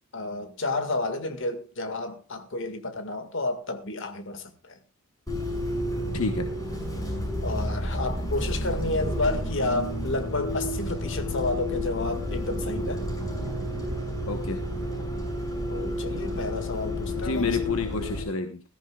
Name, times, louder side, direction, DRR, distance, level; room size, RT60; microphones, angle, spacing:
voice 1, 0.1-4.8 7.4-13.0 15.7-17.5, left 2 dB, 60° left, 1.9 m, -31 dB
Bus, 5.3-18.2, left 1 dB, 20° left, 6.2 m, -30 dB
voice 2, 6.1-6.5 14.3-14.6 17.2-18.6, left 3 dB, 80° left, 1.1 m, -29 dB
20.5 x 13.5 x 2.4 m
head